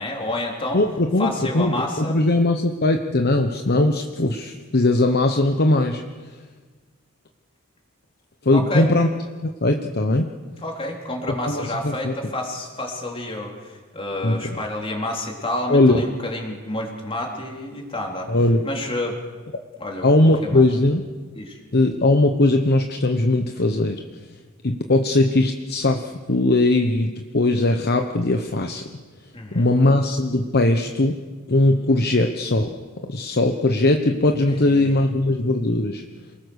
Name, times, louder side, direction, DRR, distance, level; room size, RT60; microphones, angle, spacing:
voice 1, 0.0-0.8 1.2-2.2 8.5-8.9 10.6-18.4 18.6-19.2 19.8-20.7 21.3-21.6 29.3-29.7 34.5-35.0, left 1 dB, 25° left, 0 dB, 3.8 m, -29 dB
voice 2, 0.7-6.0 8.4-9.1 9.4-10.3 11.4-12.1 14.2-14.6 15.7-16.0 18.3-18.6 20.0-21.0 21.7-24.0 24.6-28.8 29.5-31.2 31.5-32.7 33.1-36.0, left 2 dB, 50° left, 5 dB, 1.1 m, -19 dB
28.0 x 19.5 x 6.5 m, 1.4 s
head